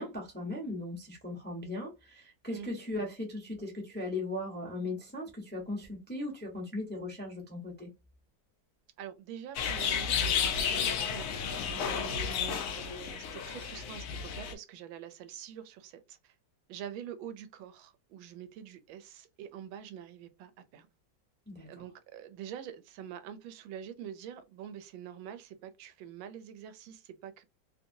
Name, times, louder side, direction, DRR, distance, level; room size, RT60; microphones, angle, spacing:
voice 1, 0.0-7.9 21.5-21.8, left 2 dB, 10° left, 0.6 m, -38 dB
voice 2, 9.0-16.3 16.7-20.9 21.7-27.4, right 9 dB, 85° right, 1.4 m, -46 dB
sound 1, 9.5-14.5, left 7 dB, 85° left, 0.7 m, -32 dB
3.3 x 2.6 x 2.6 m
omnidirectional pair, 2.1 m